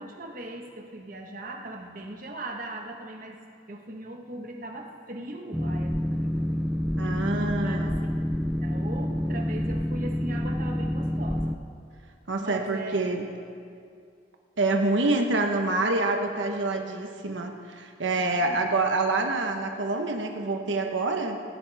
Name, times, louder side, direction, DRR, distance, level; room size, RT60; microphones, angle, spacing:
voice 1, 0.0-3.4 3.7-6.6 7.6-8.1 8.6-11.5 12.4-13.1 18.1-18.7, right 2 dB, 45° right, 2 dB, 1.3 m, -39 dB
Boat Water vehicle, 5.5-11.6, left 1 dB, ahead, 0.4 m, -28 dB
voice 2, 7.0-8.0 12.3-13.3 14.6-21.4, right 2 dB, 85° right, 3 dB, 1.1 m, -26 dB
17.0 x 16.5 x 3.5 m, 2.3 s
head